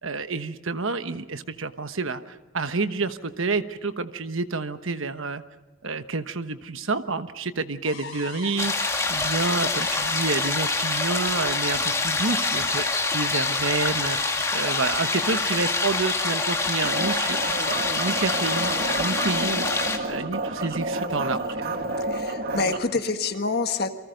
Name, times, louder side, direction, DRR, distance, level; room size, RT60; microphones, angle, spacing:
voice 1, 0.0-5.4 5.8-14.2 14.5-17.5 18.0-21.4, right 3 dB, 65° right, 10 dB, 1.2 m, -29 dB
sound 1, 7.8-19.4, left 5 dB, 70° left, 3.7 m, -38 dB
sound 2, 8.6-20.0, left 3 dB, 15° left, 2.1 m, -26 dB
sound 3, 16.8-22.8, right 2 dB, 45° right, 1.7 m, -30 dB
voice 2, 22.0-23.9, left 3 dB, 45° left, 7 dB, 1.6 m, -27 dB
29.0 x 24.0 x 5.3 m, 1.2 s
head